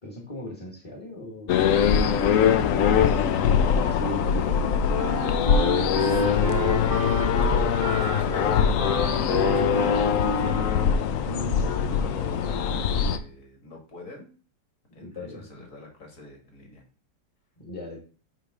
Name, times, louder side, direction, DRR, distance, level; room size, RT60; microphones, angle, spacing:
voice 1, 0.0-1.7 2.3-3.3 3.8-4.6 9.8-10.0 14.9-15.5 17.6-18.0, equal, 20° left, -1 dB, 1.3 m, -39 dB
sound 1, 1.5-13.2, left 7 dB, 80° left, 0.7 m, -22 dB
Wind instrument woodwind instrument, 4.5-11.8, right 6 dB, 35° right, 0.6 m, -33 dB
voice 2, 5.9-11.0 11.9-14.3 15.0-16.8, left 2 dB, 45° left, 1 dB, 2.2 m, -44 dB
8.0 x 3.4 x 4.9 m, 0.38 s
omnidirectional pair, 2.1 m